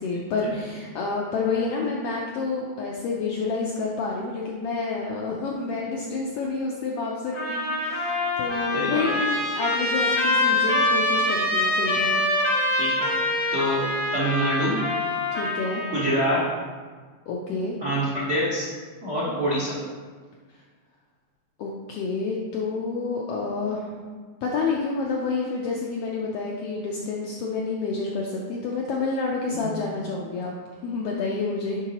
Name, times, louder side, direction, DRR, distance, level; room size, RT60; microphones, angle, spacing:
voice 1, 0.0-12.1 15.3-15.8 17.3-17.8 21.6-23.9 24.4-30.5 30.8-31.8, left 4 dB, 80° left, -2 dB, 1.3 m, -29 dB
Trumpet, 7.3-16.5, left 1 dB, 60° left, 1.1 m, -25 dB
voice 2, 8.7-9.2 12.7-13.1 13.5-13.8 14.1-14.8 15.9-16.4 17.8-18.7 19.0-19.7 29.5-29.7, equal, 75° right, -9 dB, 0.6 m, -25 dB
8.7 x 3.8 x 2.9 m, 1.5 s
omnidirectional pair, 3.3 m